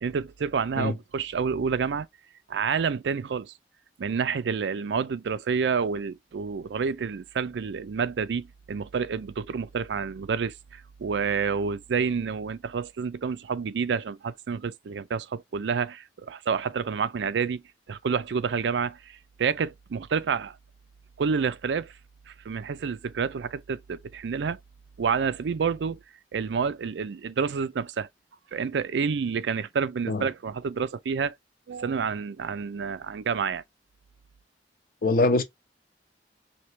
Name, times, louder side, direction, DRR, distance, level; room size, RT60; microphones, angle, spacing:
voice 1, 0.0-2.1 2.5-3.5 4.0-17.6 17.9-20.6 21.2-21.9 22.3-24.6 25.0-26.0 26.3-28.1 28.5-31.3 31.7-33.6, right 6 dB, 75° right, 0.4 m, -29 dB
voice 2, 35.0-35.4, left 2 dB, 55° left, 0.9 m, -23 dB
4.4 x 2.9 x 3.1 m
head